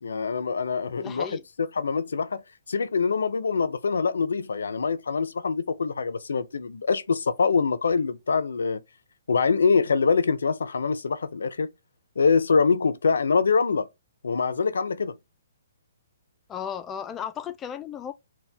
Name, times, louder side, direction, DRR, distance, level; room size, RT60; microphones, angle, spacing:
voice 1, 0.0-1.3 1.8-2.4 2.7-8.8 9.3-11.7 12.2-13.9 14.2-15.2, left 5 dB, 85° left, 0.6 m, -24 dB
voice 2, 1.0-1.4 16.5-18.1, left 8 dB, 15° left, 0.3 m, -35 dB
4.4 x 2.2 x 3.4 m
hypercardioid pair, 155°, 0 cm